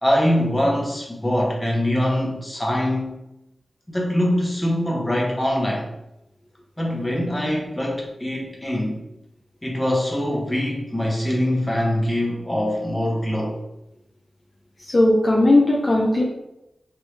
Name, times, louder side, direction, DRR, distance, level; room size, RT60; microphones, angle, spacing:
voice 1, 0.0-3.2 3.9-5.9 6.8-9.0 9.6-13.6, left 1 dB, 15° left, -1 dB, 1.0 m, -23 dB
voice 2, 14.9-16.2, left 1 dB, 45° left, -2 dB, 0.5 m, -17 dB
3.3 x 2.6 x 3.2 m, 0.89 s
cardioid pair, 45°, 0 cm